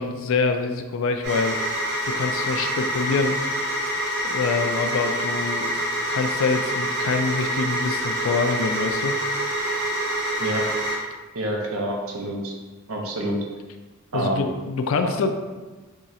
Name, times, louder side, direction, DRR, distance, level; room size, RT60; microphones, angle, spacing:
voice 1, 0.0-1.6 2.0-3.4 4.2-5.7 6.1-9.2 14.1-15.3, left 4 dB, 65° left, 7 dB, 0.4 m, -25 dB
sound 1, 1.2-11.0, equal, 50° right, 0.9 m, -26 dB
voice 2, 11.3-12.5 12.9-13.4 14.1-14.5 15.0-15.1, right 1 dB, 75° right, 0 dB, 0.7 m, -27 dB
3.1 x 2.8 x 3.7 m, 1.2 s
head